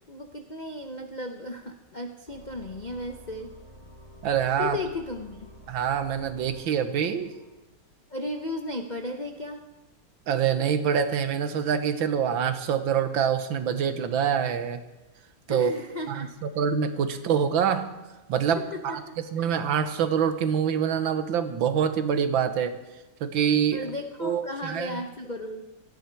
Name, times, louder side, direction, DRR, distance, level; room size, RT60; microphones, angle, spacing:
voice 1, 0.1-3.5 4.6-5.5 8.1-9.7 15.5-16.3 18.5-19.5 23.7-25.6, left 2 dB, 50° left, 4 dB, 0.5 m, -35 dB
sound 1, 2.3-7.5, right 1 dB, 20° right, 2.4 m, -50 dB
voice 2, 4.2-4.8 5.7-7.3 10.3-14.8 15.5-15.7 16.1-17.9 18.3-19.0 19.3-22.8 23.2-23.9 24.2-25.0, right 8 dB, 75° right, 10 dB, 1.8 m, -25 dB
18.0 x 13.5 x 4.6 m, 1.1 s
omnidirectional pair, 2.2 m